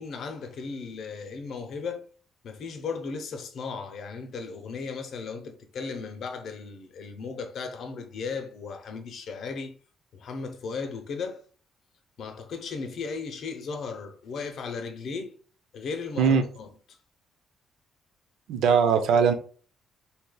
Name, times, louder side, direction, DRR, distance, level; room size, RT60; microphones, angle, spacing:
voice 1, 0.0-2.0 2.4-9.8 10.1-11.5 12.2-15.4 15.7-17.0, left 5 dB, 60° left, 0.6 m, -36 dB
voice 2, 18.5-19.3, right 6 dB, 85° right, 0.5 m, -20 dB
3.2 x 2.8 x 2.2 m
cardioid pair, 130°, 0 cm